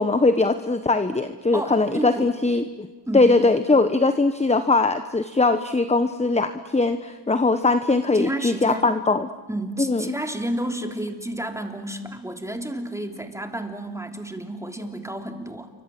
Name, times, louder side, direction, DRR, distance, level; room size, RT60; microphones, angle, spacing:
voice 1, 0.0-2.9 3.1-9.3 9.8-10.2, left 3 dB, 15° left, 10 dB, 1.1 m, -21 dB
voice 2, 1.5-2.3 3.1-3.3 8.1-8.9 9.5-15.7, right 1 dB, 5° right, 4 dB, 3.4 m, -31 dB
28.5 x 24.5 x 7.7 m, 1.3 s
cardioid pair, 65°, 42 cm